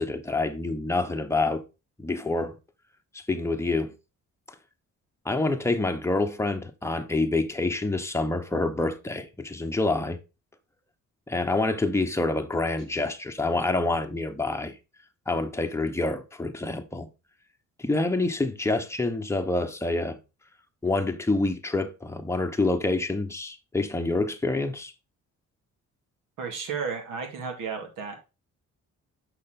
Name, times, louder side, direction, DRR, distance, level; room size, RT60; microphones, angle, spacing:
voice 1, 0.0-1.6 2.0-2.6 3.1-3.9 5.2-10.2 11.3-14.7 15.3-17.1 17.8-20.2 20.8-24.9, left 2 dB, 10° left, 1.0 m, -27 dB
voice 2, 26.4-28.2, right 5 dB, 90° right, 2.1 m, -33 dB
6.4 x 5.6 x 3.7 m
cardioid pair, 95°, 31 cm